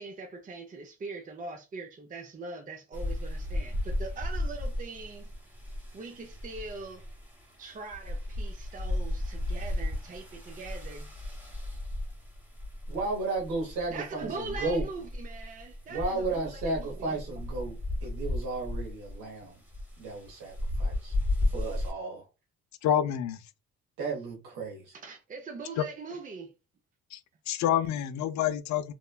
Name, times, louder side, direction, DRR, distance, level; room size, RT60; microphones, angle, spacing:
voice 1, 0.0-5.3 5.9-7.0 7.6-11.1 13.9-17.2 24.9-26.5, right 3 dB, 30° right, 0.4 m, -42 dB
sound 1, 2.9-21.9, left 1 dB, 5° right, 0.9 m, -35 dB
voice 2, 12.9-14.9 15.9-19.6 20.0-21.2 21.5-22.2 24.0-24.9, right 3 dB, 90° right, 1.0 m, -34 dB
voice 3, 22.8-23.4 25.8-25.9 27.1-27.2 27.5-28.9, left 10 dB, 65° left, 0.5 m, -27 dB
3.0 x 2.1 x 2.2 m
cardioid pair, 90°, 30 cm